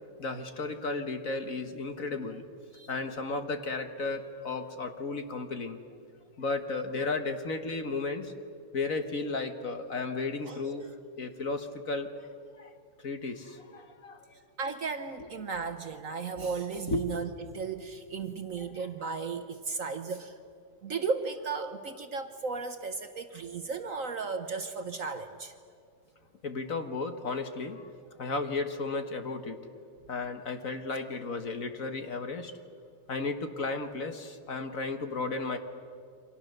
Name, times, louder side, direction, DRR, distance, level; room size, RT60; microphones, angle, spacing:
voice 1, 0.2-2.5 2.9-5.8 6.4-8.3 8.7-10.9 11.2-12.3 12.6-12.7 13.0-14.2 16.4-16.5 16.9-17.1 18.5-19.1 24.1-24.2 26.4-27.9 28.2-29.7 30.1-32.5 33.1-35.6, left 3 dB, 50° left, 7 dB, 1.6 m, -34 dB
voice 2, 10.5-10.9 14.6-20.3 20.8-25.5, right 4 dB, 50° right, 8 dB, 1.2 m, -35 dB
29.0 x 25.5 x 6.6 m, 2.3 s
omnidirectional pair, 2.0 m